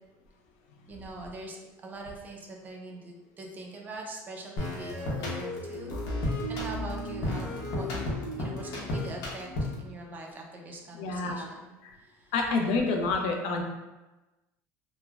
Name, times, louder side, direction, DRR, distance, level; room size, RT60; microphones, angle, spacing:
voice 1, 0.9-6.0 6.5-7.9 8.4-9.5 9.8-12.3, right 2 dB, 25° right, 0 dB, 0.5 m, -43 dB
sound 1, 4.6-9.9, left 1 dB, 60° left, 0.8 m, -33 dB
voice 2, 10.9-11.5 11.8-11.9 12.3-13.6, left 3 dB, 80° left, 2 dB, 0.5 m, -28 dB
3.0 x 2.1 x 2.3 m, 1.1 s
cardioid pair, 130°, 7 cm